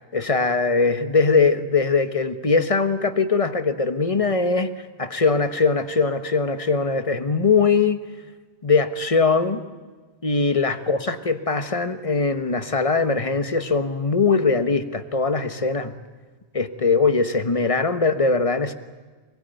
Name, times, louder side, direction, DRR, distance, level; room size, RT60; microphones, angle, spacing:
voice 1, 0.1-4.7 5.0-8.0 8.6-9.6 10.2-15.9 16.5-18.7, left 4 dB, 30° left, 9 dB, 1.3 m, -21 dB
24.0 x 22.0 x 9.1 m, 1.4 s
omnidirectional pair, 1.1 m